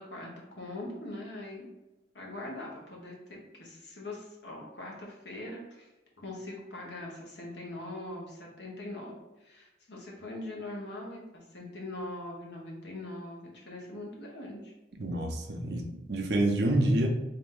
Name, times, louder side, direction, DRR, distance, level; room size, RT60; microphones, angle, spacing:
voice 1, 0.0-1.7 2.1-5.9 6.2-14.7, left 1 dB, 70° left, -2 dB, 1.1 m, -42 dB
voice 2, 15.0-17.1, right 1 dB, 65° right, 3 dB, 0.6 m, -27 dB
3.4 x 2.8 x 3.8 m, 1.0 s
head